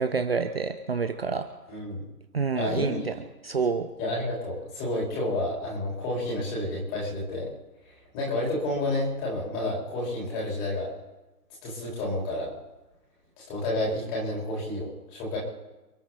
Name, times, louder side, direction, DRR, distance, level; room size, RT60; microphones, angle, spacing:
voice 1, 0.0-1.4 2.3-3.0 3.4-3.9, right 5 dB, 40° right, 8 dB, 0.9 m, -27 dB
voice 2, 1.7-2.0 2.5-3.2 4.0-7.5 8.1-10.9 11.6-12.5 13.4-15.4, left 1 dB, 15° left, -5 dB, 4.3 m, -30 dB
29.0 x 10.0 x 4.1 m, 1.1 s
figure-of-eight pair, 150°, 46 cm